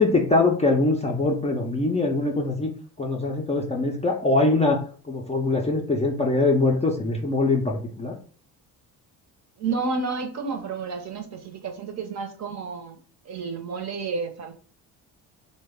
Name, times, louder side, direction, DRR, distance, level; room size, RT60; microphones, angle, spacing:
voice 1, 0.0-2.7 3.0-8.2, left 2 dB, 15° left, 0 dB, 0.4 m, -23 dB
voice 2, 9.6-13.0 13.2-14.5, right 4 dB, 40° right, 6 dB, 0.7 m, -30 dB
3.0 x 2.2 x 3.5 m, 0.42 s
supercardioid pair, 85°, 42 cm